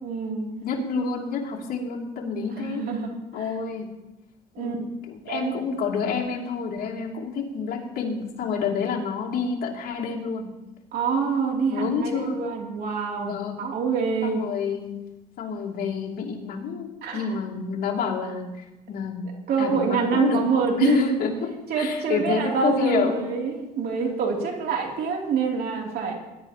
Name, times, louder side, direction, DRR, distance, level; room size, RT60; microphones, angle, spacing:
voice 1, 0.0-0.5 2.6-3.5 4.5-4.8 5.3-5.5 10.9-14.4 17.0-17.3 19.5-21.0 21.7-26.1, right 5 dB, 65° right, 0 dB, 3.0 m, -26 dB
voice 2, 0.6-2.9 3.3-3.9 4.6-10.5 11.7-12.4 13.2-13.5 14.2-15.0 15.4-19.2 19.6-20.5 20.8-23.3, left 5 dB, 65° left, -2 dB, 2.8 m, -28 dB
21.0 x 11.5 x 3.0 m, 1.0 s
cardioid pair, 110°, 17 cm